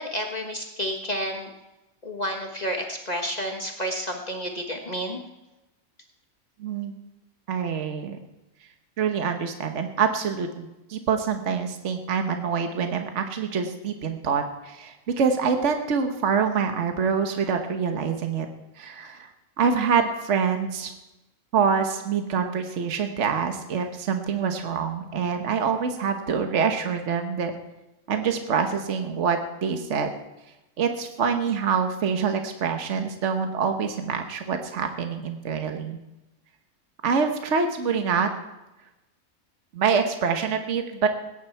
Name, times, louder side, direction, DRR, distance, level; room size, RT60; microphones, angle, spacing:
voice 1, 0.0-1.5 2.0-5.2, equal, 30° left, 2 dB, 1.4 m, -30 dB
voice 2, 6.6-7.0 7.5-8.2 9.0-18.5 18.8-19.3 19.6-20.9 21.5-27.5 28.1-30.1 30.8-36.0 37.0-38.3 39.7-41.1, right 6 dB, 60° right, 6 dB, 1.4 m, -25 dB
20.0 x 9.9 x 4.5 m, 0.98 s
omnidirectional pair, 1.4 m